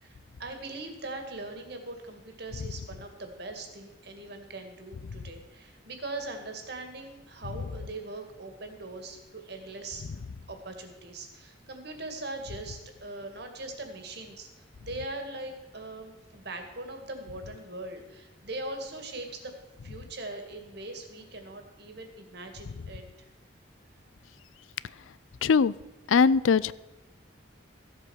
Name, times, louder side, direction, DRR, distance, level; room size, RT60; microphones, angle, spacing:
voice 1, 0.0-10.1 10.5-19.5 19.8-23.3, right 2 dB, 55° right, 5 dB, 2.2 m, -41 dB
voice 2, 25.4-25.7 26.1-26.7, left 5 dB, 85° left, 20 dB, 0.5 m, -21 dB
15.5 x 8.1 x 6.4 m, 1.1 s
head